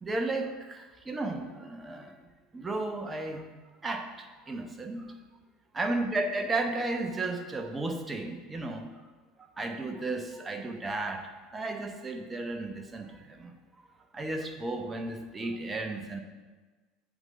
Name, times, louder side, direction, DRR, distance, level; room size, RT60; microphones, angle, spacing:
voice 1, 0.0-2.2 2.5-3.5 3.8-5.2 5.7-8.9 9.4-11.3 11.5-13.5 14.1-16.2, right 2 dB, 20° right, 4 dB, 1.0 m, -34 dB
7.9 x 3.8 x 6.5 m, 1.3 s
figure-of-eight pair, 70°, 0 cm